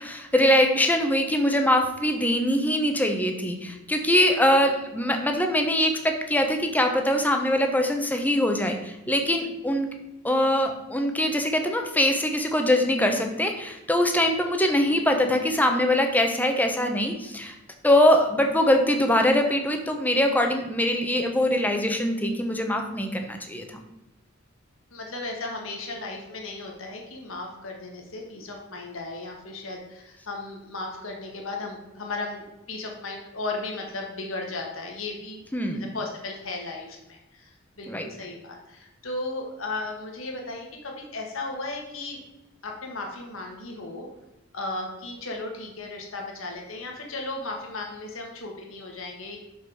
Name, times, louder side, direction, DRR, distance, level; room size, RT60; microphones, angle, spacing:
voice 1, 0.0-9.9 10.2-17.6 17.8-23.8 35.5-35.9 37.9-38.1, left 1 dB, 10° left, 4 dB, 0.8 m, -23 dB
voice 2, 24.9-35.4 35.7-42.2 42.6-44.1 44.5-49.4, left 2 dB, 90° left, 1 dB, 1.6 m, -35 dB
6.0 x 5.5 x 4.7 m, 0.96 s
head